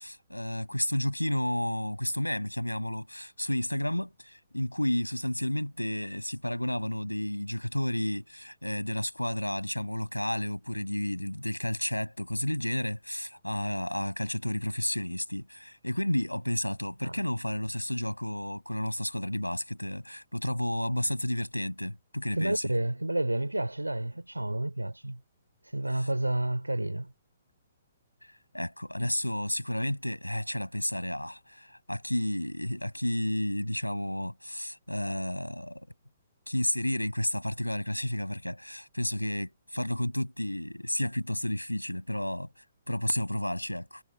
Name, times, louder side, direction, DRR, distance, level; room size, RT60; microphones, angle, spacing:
voice 1, 0.0-22.7 25.9-26.1 28.5-35.9 36.5-44.0, left 1 dB, 90° left, 7.6 m, -31 dB
voice 2, 22.4-25.2 25.7-27.1, right 1 dB, 85° right, 2.9 m, -30 dB
figure-of-eight pair, 125°, 0 cm